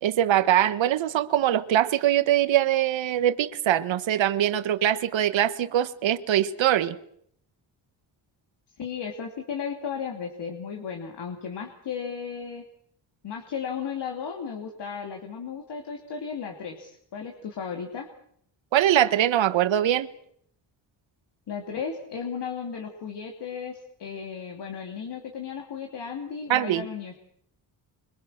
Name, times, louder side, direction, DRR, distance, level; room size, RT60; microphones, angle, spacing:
voice 1, 0.0-7.0 18.7-20.1 26.5-26.9, right 11 dB, 80° right, 1.4 m, -22 dB
voice 2, 8.8-12.6 13.2-18.1 21.5-27.1, left 6 dB, 65° left, 2.9 m, -35 dB
26.0 x 24.0 x 6.4 m
wide cardioid pair, 135°, 45 cm